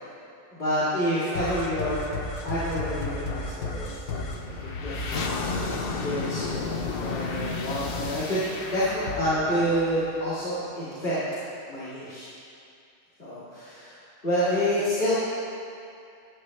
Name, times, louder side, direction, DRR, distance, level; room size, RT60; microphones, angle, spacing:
voice 1, 0.5-2.1 2.4-6.6 7.0-11.2 11.7-12.3 13.2-14.0 14.2-15.2, equal, 40° left, -13 dB, 2.6 m, -28 dB
sound 1, 1.3-10.7, left 3 dB, 55° left, 0.9 m, -32 dB
13.0 x 8.3 x 3.2 m, 2.5 s
omnidirectional pair, 1.3 m